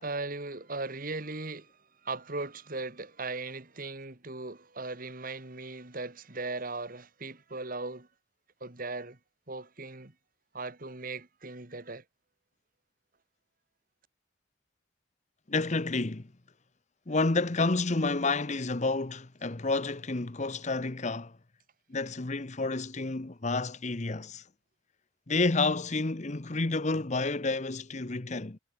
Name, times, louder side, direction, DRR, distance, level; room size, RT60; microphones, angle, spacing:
voice 1, 0.0-8.1 8.6-9.2 9.5-10.1 10.5-12.0, right 3 dB, 45° right, 2.1 m, -38 dB
voice 2, 15.5-16.3 17.1-21.3 21.9-24.4 25.3-28.6, left 3 dB, 35° left, 0.9 m, -30 dB
head